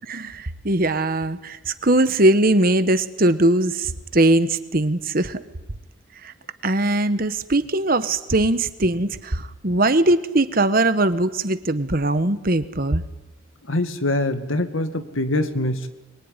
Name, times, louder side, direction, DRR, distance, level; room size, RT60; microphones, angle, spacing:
voice 1, 0.1-5.4 6.2-6.3 6.6-13.0, right 2 dB, 45° right, 12 dB, 1.3 m, -20 dB
voice 2, 13.6-15.9, left 1 dB, 85° left, 8 dB, 2.0 m, -24 dB
23.5 x 22.0 x 9.9 m, 1.1 s
head